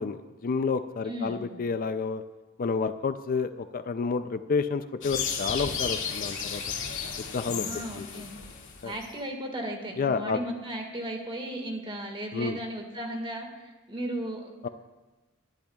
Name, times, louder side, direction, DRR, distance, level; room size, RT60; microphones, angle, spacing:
voice 1, 0.0-2.2 2.6-6.6 7.3-7.7 7.9-8.1 8.8-8.9 10.0-10.4 12.3-12.6 14.6-14.7, left 5 dB, 40° left, 10 dB, 0.4 m, -29 dB
voice 2, 1.0-1.5 7.4-8.3 8.8-14.7, right 1 dB, 25° right, 2 dB, 1.8 m, -36 dB
sound 1, 5.0-9.1, left 6 dB, 60° left, 2.1 m, -33 dB
20.5 x 11.5 x 2.3 m, 1.2 s
head